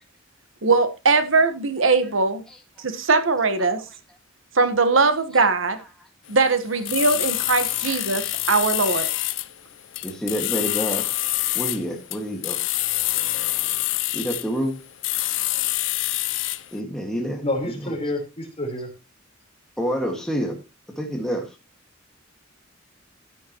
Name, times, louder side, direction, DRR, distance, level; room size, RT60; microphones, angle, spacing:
voice 1, 0.6-2.4 2.8-3.8 4.5-5.8 6.3-8.2 8.5-9.1, right 4 dB, 75° right, 1.4 m, -20 dB
voice 2, 1.8-2.1 2.5-2.6 3.6-4.0 5.3-5.5 5.7-5.9 7.9-8.0 8.2-8.3 8.8-8.9 10.0-11.0 11.5-12.6 14.1-14.8 16.7-18.0 19.8-20.6 21.0-21.5, equal, 5° left, 1.9 m, -29 dB
sound 1, 6.3-16.7, left 17 dB, 65° left, 0.6 m, -26 dB
voice 3, 17.4-18.9, left 1 dB, 30° left, 4.2 m, -28 dB
14.0 x 9.7 x 3.1 m
head